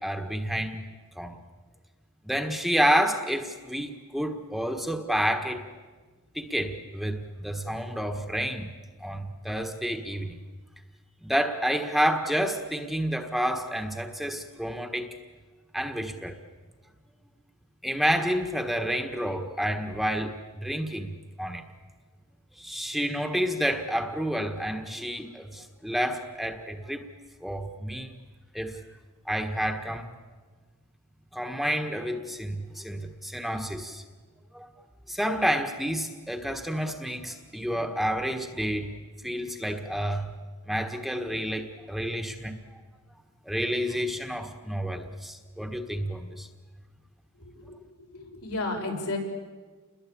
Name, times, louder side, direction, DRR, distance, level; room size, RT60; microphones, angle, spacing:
voice 1, 0.0-0.8 1.2-1.4 2.2-5.6 6.3-8.7 9.0-10.4 11.2-15.1 15.7-16.4 17.8-21.1 21.4-21.6 22.6-27.0 27.4-28.1 28.5-28.8 29.2-30.1 31.3-34.0 34.5-34.7 35.1-38.9 39.2-40.3 40.7-42.5 43.4-46.5, equal, ahead, 5 dB, 1.4 m, -29 dB
voice 2, 48.1-49.2, left 2 dB, 80° left, 1 dB, 6.4 m, -32 dB
29.5 x 22.0 x 8.7 m, 1.4 s
head